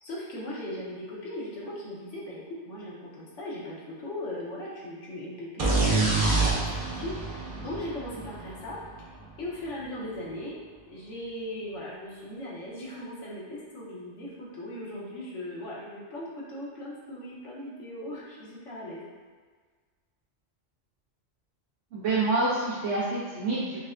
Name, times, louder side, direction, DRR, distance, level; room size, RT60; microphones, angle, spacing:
voice 1, 0.0-6.0 6.3-8.8 9.4-10.6 10.9-19.0, left 1 dB, 80° left, -6 dB, 1.2 m, -38 dB
sound 1, 5.6-9.3, right 3 dB, 40° right, 0.5 m, -27 dB
voice 2, 21.9-23.9, right 3 dB, 80° right, -9 dB, 1.1 m, -27 dB
5.1 x 2.1 x 2.5 m, 1.5 s
omnidirectional pair, 1.2 m